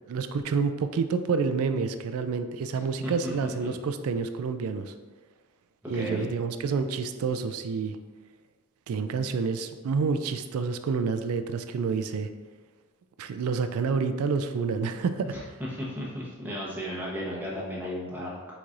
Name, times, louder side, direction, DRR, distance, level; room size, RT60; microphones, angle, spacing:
voice 1, 0.1-4.9 5.9-8.0 8.9-12.3 13.2-15.6, right 5 dB, 65° right, 9 dB, 0.3 m, -28 dB
voice 2, 5.9-6.3 15.3-18.5, equal, 10° right, -6 dB, 0.8 m, -34 dB
4.6 x 4.0 x 2.5 m, 1.3 s
head